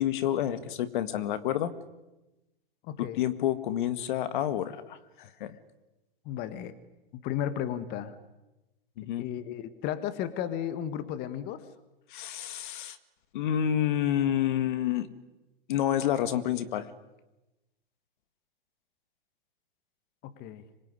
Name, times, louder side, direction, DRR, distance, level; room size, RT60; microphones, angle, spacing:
voice 1, 0.0-1.7 3.0-5.6 9.0-9.2 12.1-13.0 13.3-15.1 15.7-16.9, left 11 dB, 55° left, 12 dB, 1.9 m, -29 dB
voice 2, 2.8-3.2 6.2-6.8 7.2-8.2 9.2-11.7 20.2-20.6, left 10 dB, 35° left, 12 dB, 1.7 m, -34 dB
26.0 x 21.5 x 9.8 m, 1.0 s
hypercardioid pair, 125°, 30 cm